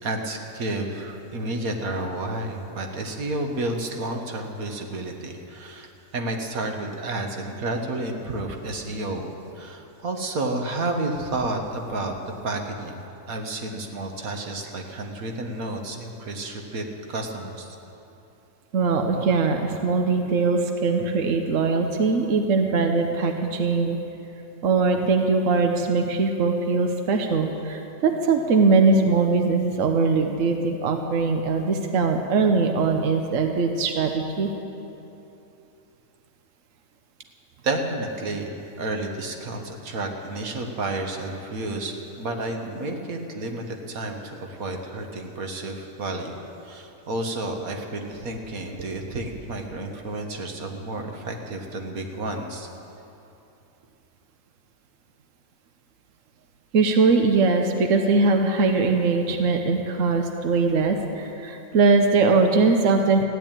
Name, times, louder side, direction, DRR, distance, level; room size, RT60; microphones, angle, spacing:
voice 1, 0.0-5.9 6.1-12.2 12.4-13.0 13.3-17.8 37.6-46.3 46.6-52.7, right 2 dB, 90° right, 3 dB, 1.9 m, -31 dB
voice 2, 18.7-24.0 24.6-34.5 56.7-63.2, right 4 dB, 65° right, 4 dB, 1.3 m, -21 dB
15.0 x 10.5 x 9.0 m, 2.8 s
omnidirectional pair, 1.4 m